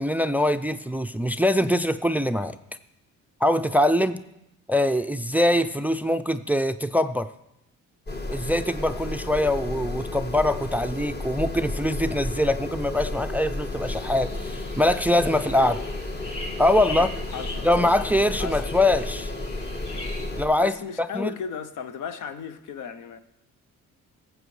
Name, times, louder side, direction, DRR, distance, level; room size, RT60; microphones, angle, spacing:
voice 1, 0.0-2.6 3.4-4.2 4.7-7.3 8.3-15.8 16.6-17.1 17.6-19.3 20.4-21.3, left 1 dB, 5° right, 0.3 m, -23 dB
sound 1, 8.1-20.4, left 2 dB, 35° left, 1.4 m, -32 dB
sound 2, 13.8-20.3, left 1 dB, 50° left, 3.7 m, -41 dB
voice 2, 17.0-17.9 18.4-18.6 20.3-23.2, left 7 dB, 85° left, 0.8 m, -36 dB
17.5 x 7.7 x 3.2 m
cardioid pair, 90°, 30 cm